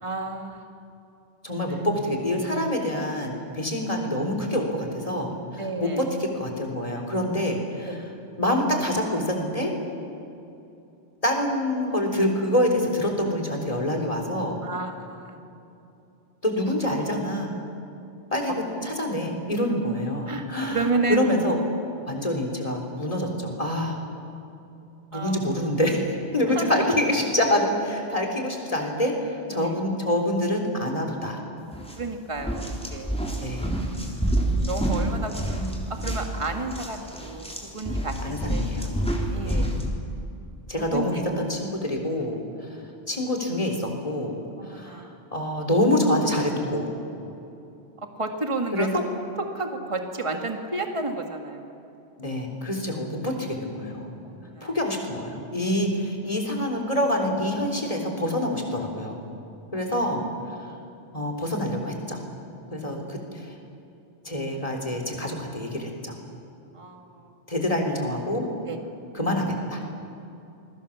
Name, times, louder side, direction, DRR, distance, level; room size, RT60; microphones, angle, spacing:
voice 1, 0.0-0.6 1.7-1.8 5.6-6.1 7.9-8.0 14.6-15.4 18.5-18.9 20.3-21.2 25.1-25.7 26.4-26.9 29.5-29.8 32.0-33.2 33.8-33.9 34.7-35.6 35.9-38.8 39.3-39.6 40.7-41.2 44.6-45.1 48.0-49.0 49.4-51.7 54.2-54.7 60.5-60.6 66.7-67.3 68.7-68.8, right 3 dB, 25° right, 4 dB, 2.0 m, -31 dB
voice 2, 1.4-8.0 8.4-9.7 11.2-14.6 16.4-17.5 18.3-18.5 18.8-21.6 22.1-24.0 25.1-26.0 26.3-31.4 33.4-33.7 35.6-35.7 38.2-38.9 39.4-39.7 40.7-42.8 43.1-44.4 44.6-46.9 48.7-48.9 52.2-54.1 54.6-59.2 59.7-60.2 60.5-60.6 61.1-62.2 62.7-63.6 64.2-66.1 67.5-68.5 69.1-69.8, left 1 dB, 30° left, 1 dB, 3.7 m, -26 dB
sound 1, 31.7-32.0 32.4-39.9, right 1 dB, 5° left, 3.4 m, -28 dB
28.0 x 21.5 x 7.3 m, 2.8 s
omnidirectional pair, 1.2 m